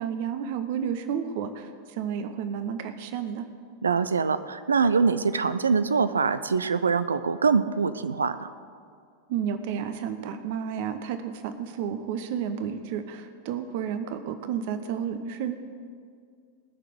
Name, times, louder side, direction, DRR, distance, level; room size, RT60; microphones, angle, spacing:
voice 1, 0.0-3.5 9.3-15.5, right 8 dB, 50° right, 9 dB, 0.9 m, -31 dB
voice 2, 3.8-8.5, right 5 dB, 75° right, 13 dB, 0.6 m, -24 dB
19.5 x 6.8 x 8.0 m, 2.2 s
figure-of-eight pair, 90°, 0 cm